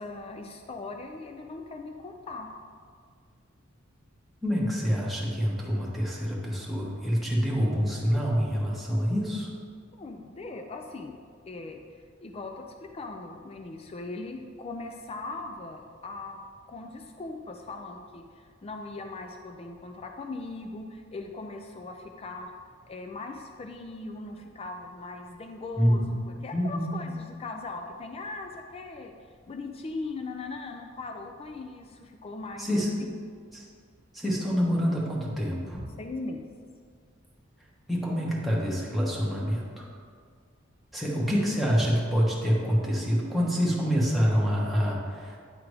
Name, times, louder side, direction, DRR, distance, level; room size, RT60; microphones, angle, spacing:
voice 1, 0.0-2.5 10.0-11.2 11.5-11.8 12.2-16.4 16.7-22.5 22.9-29.1 29.5-32.7 33.1-33.2 36.0-36.5, left 3 dB, 30° left, 4 dB, 0.4 m, -39 dB
voice 2, 4.4-9.5 25.8-26.0 26.5-27.0 32.6-32.9 33.5-33.6 34.1-35.8 37.9-39.8 40.9-45.4, equal, ahead, -5 dB, 1.2 m, -26 dB
9.6 x 3.7 x 4.7 m, 2.1 s
head